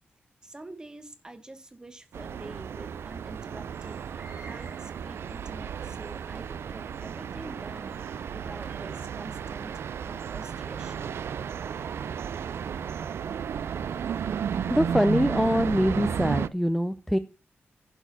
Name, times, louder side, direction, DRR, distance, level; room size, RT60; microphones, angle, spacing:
voice 1, 0.4-11.1, right 2 dB, 20° right, 1.1 m, -46 dB
sound 1, 2.1-16.5, right 7 dB, 80° right, 0.4 m, -33 dB
sound 2, 3.8-9.3, right 2 dB, 55° right, 2.5 m, -53 dB
voice 2, 14.7-17.2, equal, ahead, 0.4 m, -24 dB
11.0 x 4.4 x 5.9 m
wide cardioid pair, 125°, 4 cm